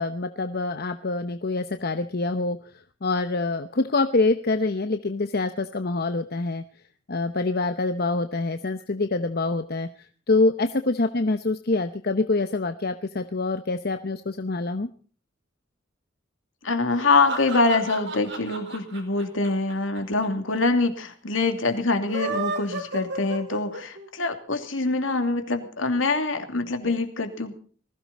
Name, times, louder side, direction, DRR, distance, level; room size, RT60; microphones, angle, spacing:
voice 1, 0.0-2.6 3.0-6.6 7.1-9.9 10.3-14.9 26.8-27.0, left 3 dB, 55° left, 9 dB, 0.9 m, -25 dB
voice 2, 16.6-27.5, left 3 dB, 85° left, 6 dB, 2.8 m, -24 dB
sound 1, 16.9-20.3 20.5-20.6 20.8-20.9 21.9-24.1, right 3 dB, 65° right, 5.0 m, -32 dB
20.0 x 16.0 x 4.2 m, 0.43 s
head